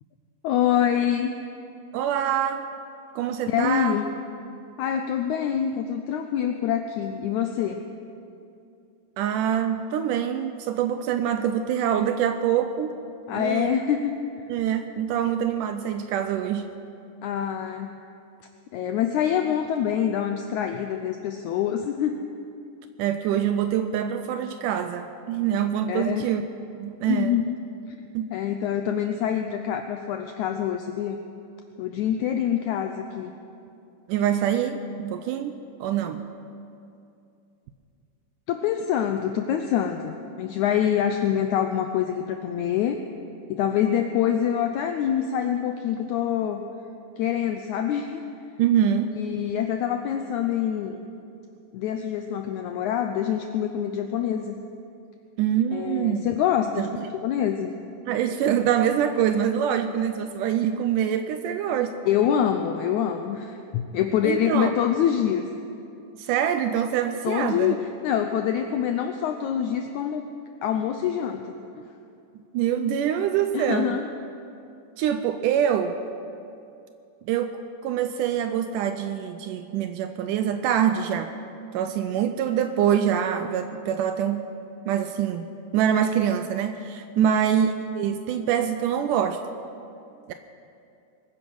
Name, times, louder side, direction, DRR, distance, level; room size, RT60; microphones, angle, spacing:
voice 1, 0.4-1.3 3.5-4.1 4.8-7.8 13.3-14.5 17.2-17.9 18.7-22.2 25.9-26.3 27.1-27.6 27.9-28.0 28.3-31.2 31.8-33.3 38.5-43.0 43.5-46.7 47.2-48.2 49.1-51.0 51.7-54.6 55.7-56.9 57.1-57.7 62.0-65.4 67.2-70.3 70.6-71.6 73.5-74.1 87.2-87.3, left 9 dB, 90° left, 6 dB, 1.7 m, -25 dB
voice 2, 1.9-2.7 3.2-4.0 9.2-13.0 13.3-13.8 14.5-16.7 23.0-26.4 26.8-27.4 28.1-28.3 34.1-36.3 48.6-49.2 55.4-56.3 56.8-57.0 58.1-62.0 64.2-64.7 66.2-67.8 72.5-74.0 75.0-76.1 77.3-81.3 81.7-84.5 84.9-85.5 85.7-89.4 90.3-90.4, right 9 dB, 80° right, 8 dB, 2.0 m, -25 dB
22.0 x 9.9 x 6.3 m, 2.6 s
omnidirectional pair, 4.1 m